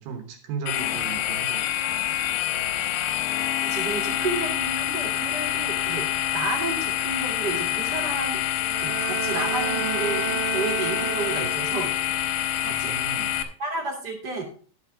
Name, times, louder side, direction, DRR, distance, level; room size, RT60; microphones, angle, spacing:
voice 1, 0.0-2.2 12.7-13.4, right 6 dB, 70° right, 5 dB, 2.4 m, -37 dB
sound 1, 0.7-13.4, left 12 dB, 75° left, 2.8 m, -27 dB
voice 2, 3.6-6.1 6.3-8.4 8.8-11.9 12.6-12.9 13.6-14.4, right 3 dB, 40° right, 0 dB, 1.5 m, -31 dB
Bowed string instrument, 8.6-12.0, right 7 dB, 85° right, 1.9 m, -32 dB
11.5 x 8.1 x 3.8 m, 0.42 s
omnidirectional pair, 5.4 m